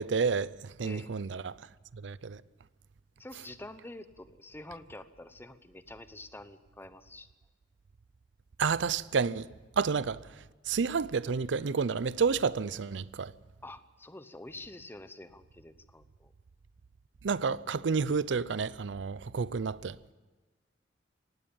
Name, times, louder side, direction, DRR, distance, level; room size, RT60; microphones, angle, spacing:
voice 1, 0.0-1.6 1.9-2.4 8.6-9.5 9.8-10.2 10.7-13.3 17.2-20.0, right 5 dB, 85° right, 0.5 m, -30 dB
voice 2, 3.2-7.3 13.6-16.3, left 2 dB, 10° left, 0.9 m, -47 dB
19.0 x 16.5 x 8.8 m
head